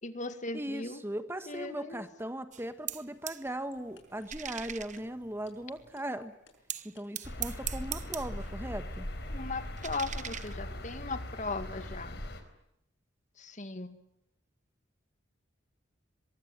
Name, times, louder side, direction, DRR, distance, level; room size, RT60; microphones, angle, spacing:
voice 1, 0.0-1.0 1.5-2.0 9.3-12.2 13.4-14.0, left 3 dB, 40° left, 11 dB, 2.0 m, -38 dB
voice 2, 0.5-6.3 6.8-9.1, right 1 dB, 10° right, 10 dB, 1.5 m, -38 dB
sound 1, 2.5-3.5 3.7-6.0 6.7-8.6 8.9-11.0, right 10 dB, 40° right, 1.1 m, -42 dB
sound 2, 3.5-7.2, left 6 dB, 75° left, 6.3 m, -60 dB
sound 3, 7.2-12.4, left 1 dB, 60° left, 4.5 m, -40 dB
23.0 x 23.0 x 9.6 m, 0.80 s
head